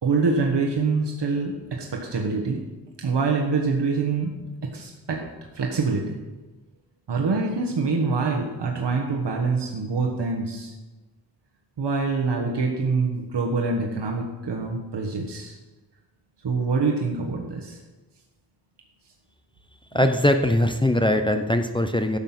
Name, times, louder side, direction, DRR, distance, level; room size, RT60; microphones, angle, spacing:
voice 1, 0.0-2.6 3.0-4.3 4.6-5.3 5.5-6.2 7.1-10.7 11.8-15.5 16.4-17.8, right 4 dB, 85° right, 0 dB, 1.4 m, -25 dB
voice 2, 19.9-22.2, left 1 dB, 10° left, 6 dB, 0.6 m, -21 dB
12.0 x 7.4 x 6.0 m, 1.2 s
wide cardioid pair, 125°, 41 cm